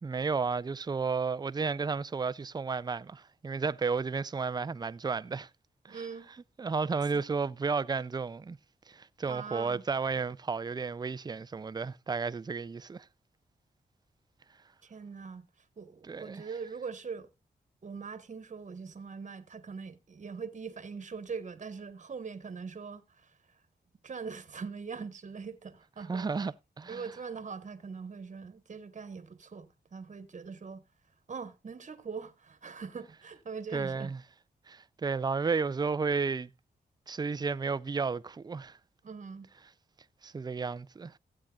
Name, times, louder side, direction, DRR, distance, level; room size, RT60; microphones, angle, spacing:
voice 1, 0.0-5.5 5.9-6.1 6.6-8.6 8.9-13.1 16.1-16.4 26.1-27.0 33.7-34.2 34.7-36.5 37.1-38.8 40.2-41.1, right 4 dB, 25° right, 0.4 m, -32 dB
voice 2, 5.9-6.3 7.1-7.2 9.2-9.8 14.8-17.3 17.8-23.6 24.0-26.3 26.9-30.8 31.3-34.1 39.0-39.5, right 5 dB, 45° right, 1.2 m, -42 dB
15.5 x 8.6 x 2.4 m
cardioid pair, 85°, 18 cm